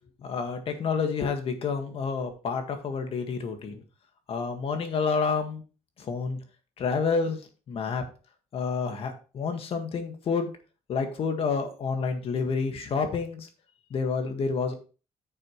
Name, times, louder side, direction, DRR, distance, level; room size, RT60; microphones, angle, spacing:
voice 1, 0.2-3.8 4.3-5.6 6.0-6.4 6.8-7.4 7.7-8.0 8.5-10.5 10.9-13.5 13.9-14.7, left 5 dB, 55° left, 6 dB, 1.7 m, -29 dB
9.5 x 6.7 x 3.1 m, 0.35 s
cardioid pair, 150°, 12 cm